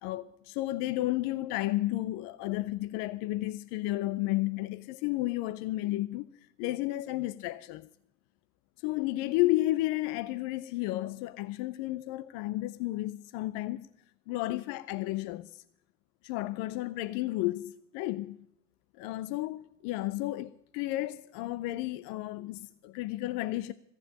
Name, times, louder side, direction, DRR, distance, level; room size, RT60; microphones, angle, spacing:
voice 1, 0.0-6.3 6.6-7.9 8.8-13.9 14.3-15.6 16.2-18.4 19.0-23.7, left 17 dB, 75° left, 0.5 m, -32 dB
14.5 x 7.5 x 9.9 m
hypercardioid pair, 65°, 35 cm